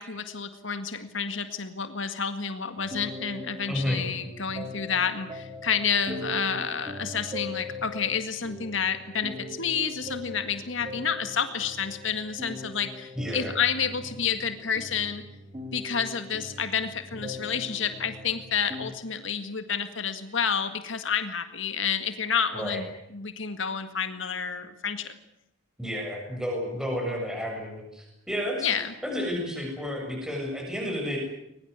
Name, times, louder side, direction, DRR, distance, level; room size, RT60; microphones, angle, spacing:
voice 1, 0.0-15.2 15.7-22.9 23.1-25.1 28.6-28.9, left 6 dB, 70° left, 9 dB, 1.9 m, -29 dB
sound 1, 2.8-18.9, left 2 dB, 25° right, 3.0 m, -41 dB
voice 2, 3.7-4.1 13.2-13.5 22.5-22.8 25.8-28.7 29.0-31.2, equal, 5° right, -1 dB, 7.5 m, -31 dB
22.5 x 20.5 x 9.6 m, 0.82 s
head